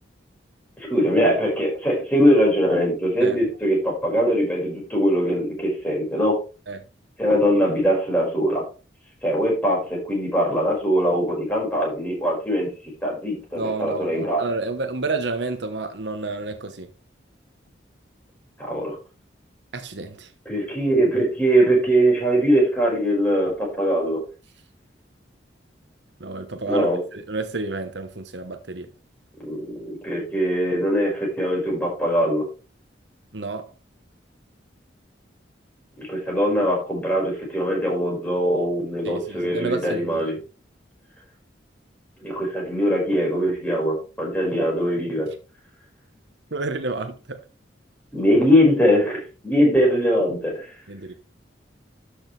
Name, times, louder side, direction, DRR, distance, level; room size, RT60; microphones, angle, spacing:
voice 1, 0.8-6.4 7.2-8.6 9.2-12.7 13.0-14.4 18.6-19.0 20.5-24.2 26.7-27.0 29.4-32.4 36.0-40.3 42.2-45.3 48.1-50.7, equal, 10° left, 5.4 m, -21 dB
voice 2, 13.6-16.9 19.7-20.3 26.2-28.9 33.3-33.7 39.0-40.3 46.5-47.4 50.9-51.1, right 3 dB, 70° right, 1.1 m, -30 dB
12.5 x 6.5 x 3.3 m
head